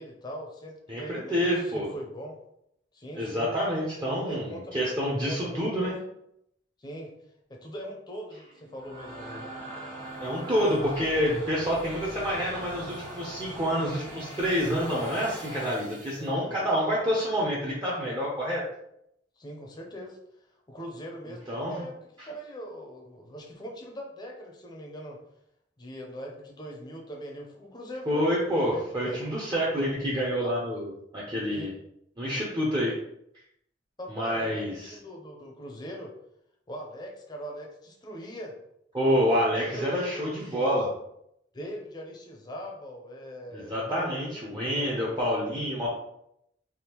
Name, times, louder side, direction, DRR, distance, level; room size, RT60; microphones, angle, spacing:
voice 1, 0.0-2.4 2.9-3.6 4.3-4.8 5.2-6.0 6.8-7.1 7.5-9.5 16.2-16.6 19.4-20.2 20.7-25.2 25.8-28.4 28.7-29.3 30.4-30.5 31.5-31.7 34.0-36.1 36.7-38.6 39.7-40.3 41.5-44.6, equal, 25° left, 0 dB, 0.5 m, -41 dB
voice 2, 0.9-1.9 3.1-5.9 10.2-18.6 21.5-21.8 22.2-22.3 28.1-31.7 32.2-32.9 34.1-35.0 38.9-40.9 43.5-45.9, equal, 25° right, -5 dB, 0.5 m, -28 dB
sound 1, 8.5-16.3, right 1 dB, 45° right, 1.3 m, -41 dB
3.5 x 2.4 x 2.8 m, 0.77 s
head